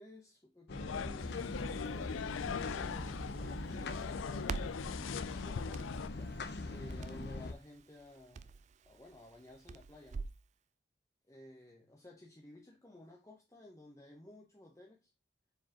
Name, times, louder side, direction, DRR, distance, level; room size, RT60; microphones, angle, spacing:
voice 1, 0.0-4.8 5.2-8.5 8.8-10.3 11.3-15.1, left 1 dB, 15° left, 0.9 m, -55 dB
sound 1, 0.7-6.1, left 7 dB, 80° left, 0.4 m, -41 dB
sound 2, 0.7-7.5, left 2 dB, 60° left, 0.7 m, -42 dB
Crackle, 1.2-10.4, right 4 dB, 35° right, 0.3 m, -47 dB
6.9 x 4.6 x 2.9 m
head